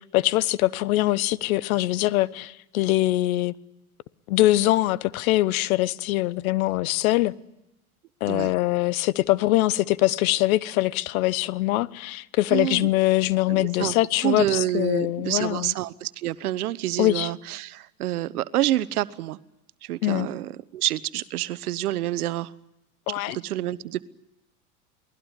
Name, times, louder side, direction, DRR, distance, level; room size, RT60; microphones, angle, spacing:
voice 1, 0.1-3.5 4.3-7.3 8.2-15.7 17.0-17.3 20.0-20.3 23.1-23.4, left 17 dB, 65° left, 1.2 m, -23 dB
voice 2, 12.5-12.9 13.5-13.9 14.2-19.4 19.8-22.5 23.1-24.0, right 14 dB, 80° right, 1.2 m, -28 dB
29.0 x 20.0 x 9.9 m
hypercardioid pair, 95°, 44 cm